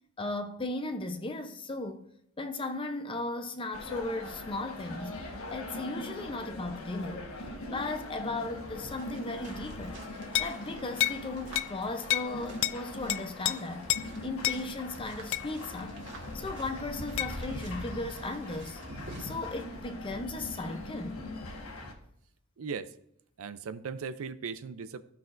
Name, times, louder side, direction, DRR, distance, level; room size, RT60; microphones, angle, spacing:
voice 1, 0.2-2.1 2.4-5.2 5.5-7.3 7.7-10.0 10.4-13.9 14.2-16.0 16.3-18.8 19.2-21.3, left 2 dB, 25° left, 0.6 m, -36 dB
sound 1, 3.7-21.9, left 1 dB, 85° left, 1.4 m, -41 dB
sound 2, 9.0-19.6, right 2 dB, 55° right, 1.6 m, -50 dB
sound 3, 10.3-10.6 11.0-11.2 11.6-11.7 12.1-12.3 12.6-12.8 13.1-13.5 13.9-14.1 14.4-14.6 15.3-15.5 17.2-17.3, left 14 dB, 60° left, 0.3 m, -28 dB
voice 2, 22.6-22.9 23.4-25.0, right 5 dB, 70° right, 0.5 m, -38 dB
15.0 x 5.8 x 2.5 m
head